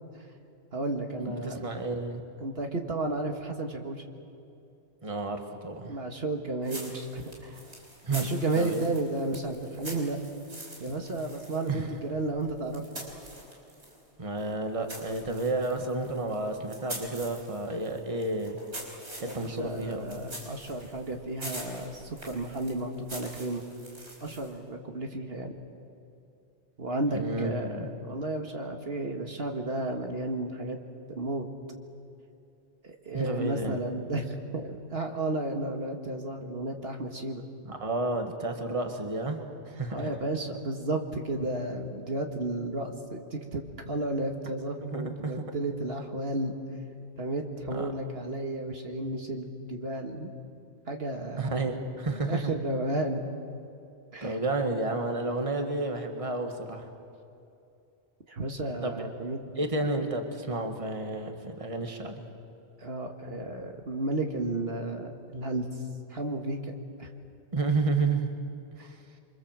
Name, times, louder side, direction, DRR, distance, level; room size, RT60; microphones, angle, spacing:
voice 1, 0.7-1.8 2.4-4.0 5.8-7.6 8.1-10.2 10.8-12.8 19.2-23.6 24.2-25.5 26.8-30.8 31.1-31.5 32.8-37.4 39.9-46.5 47.2-50.3 50.9-51.7 52.1-53.2 54.1-54.4 58.3-59.5 62.8-65.7 66.1-66.7 67.0-67.1 68.8-68.9, right 2 dB, 65° right, 3 dB, 2.0 m, -33 dB
voice 2, 1.3-2.2 5.0-6.0 8.0-8.3 8.6-8.9 11.7-11.9 14.2-18.6 19.2-20.3 27.1-27.9 33.1-33.8 37.7-40.1 44.8-45.4 47.7-47.9 51.4-52.5 54.2-56.9 58.8-59.1 59.6-62.2 67.5-68.3, right 2 dB, 30° right, 5 dB, 1.9 m, -31 dB
sound 1, 6.6-14.0 14.4-24.6, right 1 dB, 80° right, 5.2 m, -45 dB
28.0 x 25.0 x 7.5 m, 2.7 s
omnidirectional pair, 1.1 m